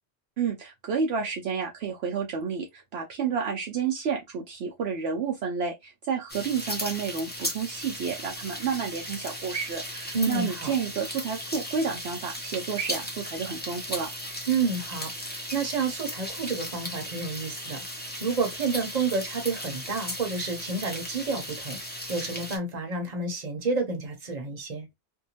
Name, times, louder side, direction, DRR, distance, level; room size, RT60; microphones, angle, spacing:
voice 1, 0.4-14.1, right 6 dB, 70° right, 0.8 m, -30 dB
sound 1, 6.3-22.6, equal, 10° left, 0.6 m, -36 dB
voice 2, 10.1-10.7 14.5-21.8 22.1-24.9, right 4 dB, 40° right, 0.9 m, -30 dB
2.7 x 2.2 x 2.8 m
omnidirectional pair, 1.2 m